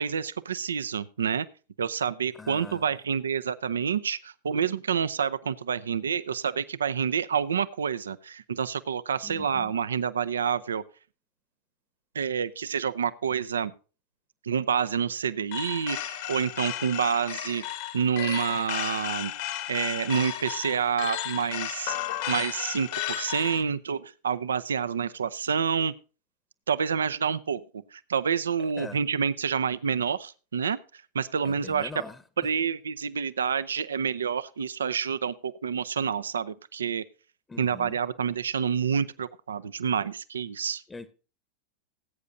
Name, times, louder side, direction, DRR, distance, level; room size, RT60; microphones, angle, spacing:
voice 1, 0.0-1.5 1.8-10.8 12.1-13.7 14.5-17.6 17.9-19.3 19.7-22.0 22.3-25.9 26.7-27.6 27.9-30.8 31.1-31.9 32.4-37.0 37.6-40.8, right 7 dB, 85° right, 0.5 m, -28 dB
voice 2, 2.3-2.9 9.2-9.7 28.6-29.0 31.4-32.2 37.5-38.0 40.9-41.1, left 3 dB, 15° left, 0.9 m, -42 dB
sound 1, 15.5-23.6, left 12 dB, 65° left, 1.5 m, -34 dB
19.5 x 8.5 x 2.6 m
hypercardioid pair, 100°, 0 cm